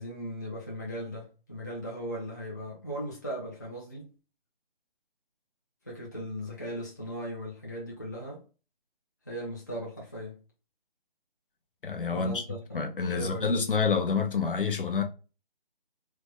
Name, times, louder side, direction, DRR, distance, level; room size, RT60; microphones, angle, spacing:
voice 1, 0.0-4.1 5.8-8.4 9.3-10.4 12.1-12.8 13.1-13.5, equal, 20° left, 0.4 m, -38 dB
voice 2, 11.8-12.4 12.7-15.0, left 5 dB, 65° left, 0.7 m, -28 dB
3.4 x 2.1 x 3.1 m
figure-of-eight pair, 155°, 29 cm